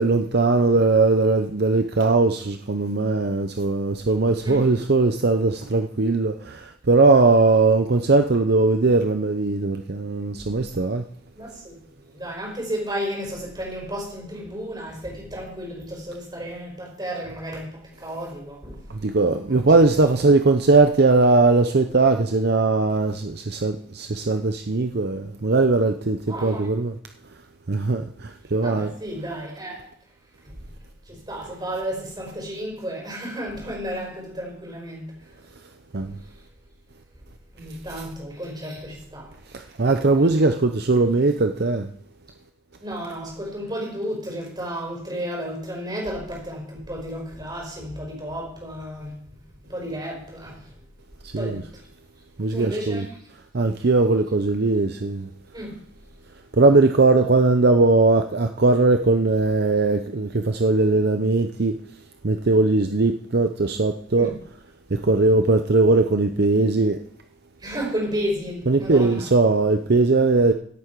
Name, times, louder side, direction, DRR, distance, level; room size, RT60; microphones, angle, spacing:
voice 1, 0.0-11.0 18.9-26.9 27.7-28.9 35.9-36.2 39.5-41.9 51.2-51.6 52.4-53.0 53.5-55.3 56.5-61.8 62.2-64.3 64.9-67.0 68.7-70.5, right 3 dB, 55° right, 0.7 m, -19 dB
voice 2, 4.4-4.7 11.3-11.8 12.1-18.9 19.5-20.6 26.3-26.7 28.6-29.9 30.4-30.5 31.1-35.3 36.0-36.3 37.5-39.3 40.2-40.3 42.8-49.4 49.7-50.8 51.4-51.8 52.5-53.1 53.8-53.9 55.5-55.8 64.1-64.3 64.9-65.0 67.6-69.3, equal, 20° right, 5.3 m, -33 dB
16.5 x 8.7 x 4.7 m
head